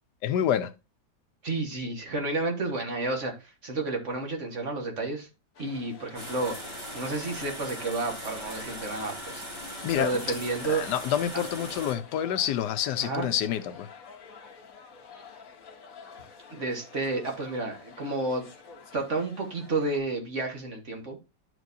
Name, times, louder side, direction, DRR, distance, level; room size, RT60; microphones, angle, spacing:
voice 1, 0.2-0.7 9.8-10.2 10.7-13.9, left 10 dB, 80° left, 1.2 m, -28 dB
voice 2, 1.4-5.3 5.6-6.5 6.9-9.4 10.0-10.9 13.0-13.3 16.5-18.5 18.9-21.2, right 3 dB, 45° right, 1.7 m, -31 dB
sound 1, 5.5-20.0, left 5 dB, 55° left, 1.5 m, -49 dB
sound 2, 6.1-11.9, equal, 15° right, 2.2 m, -39 dB
11.5 x 4.7 x 2.7 m
omnidirectional pair, 1.8 m